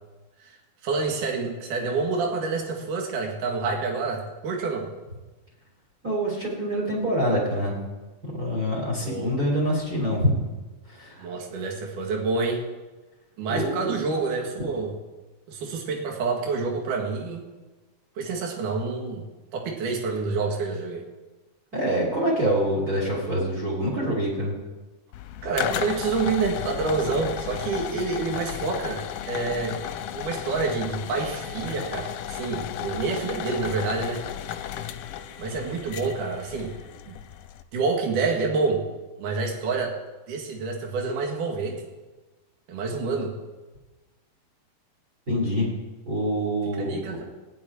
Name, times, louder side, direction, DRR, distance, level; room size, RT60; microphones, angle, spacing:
voice 1, 0.8-4.9 9.0-9.3 11.2-12.6 13.4-14.9 15.5-17.4 18.2-19.2 19.5-21.0 25.4-29.8 30.1-34.2 35.4-36.7 37.1-37.2 37.7-38.8 39.2-39.9 40.3-41.9 42.7-43.4 46.8-47.2, right 4 dB, 65° right, 0 dB, 3.2 m, -28 dB
voice 2, 6.0-7.8 8.2-10.3 10.9-11.3 13.5-13.9 21.7-24.5 45.3-45.7 46.1-47.0, equal, 25° right, -2 dB, 3.4 m, -25 dB
sound 1, 25.1-37.6, left 10 dB, 80° left, 2.1 m, -34 dB
17.0 x 6.2 x 9.5 m, 1.2 s
omnidirectional pair, 4.2 m